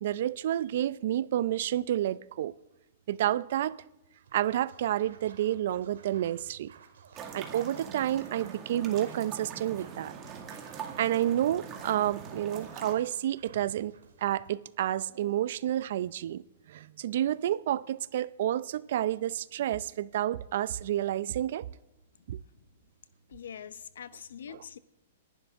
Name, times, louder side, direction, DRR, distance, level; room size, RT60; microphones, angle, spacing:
voice 1, 0.0-2.5 3.1-3.7 4.3-6.7 7.3-10.1 11.0-13.9 14.2-16.4 16.7-21.7 22.3-22.4, right 12 dB, 60° right, 0.5 m, -30 dB
Scratching (performance technique), 4.2-14.5, right 6 dB, 80° right, 2.1 m, -55 dB
sound 1, 7.1-12.9, right 7 dB, 25° right, 2.0 m, -43 dB
voice 2, 22.2-22.7 23.3-24.8, left 8 dB, 80° left, 0.7 m, -45 dB
27.0 x 11.0 x 3.6 m
hypercardioid pair, 140°, 0 cm